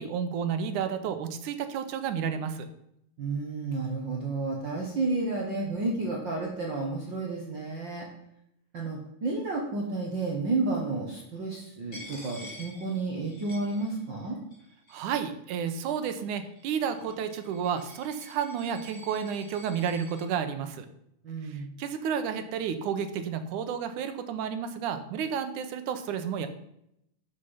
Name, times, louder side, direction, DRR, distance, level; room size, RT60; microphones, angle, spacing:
voice 1, 0.0-2.7 14.9-20.9 21.4-26.5, right 7 dB, 80° right, 9 dB, 2.5 m, -31 dB
voice 2, 3.2-8.1 8.7-14.4 21.2-21.7, right 3 dB, 45° right, -1 dB, 1.8 m, -31 dB
Coin (dropping), 11.9-14.2 14.5-15.3 16.0-20.2, equal, 25° left, 4.5 m, -49 dB
12.0 x 6.7 x 5.7 m, 0.77 s
omnidirectional pair, 3.6 m